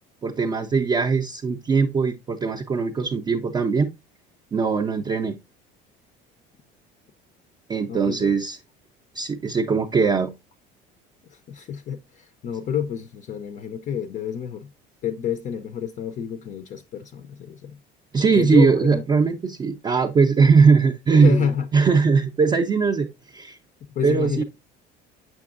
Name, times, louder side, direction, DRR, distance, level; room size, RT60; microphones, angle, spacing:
voice 1, 0.2-3.9 4.5-5.4 7.7-8.6 9.1-10.3 18.1-23.6 24.0-24.4, right 5 dB, 20° right, 0.4 m, -20 dB
voice 2, 7.9-8.3 11.5-14.7 15.0-17.8 18.1-19.0 21.2-21.7 23.9-24.4, left 8 dB, 40° left, 0.5 m, -29 dB
6.6 x 5.9 x 2.4 m
cardioid pair, 140°, 19 cm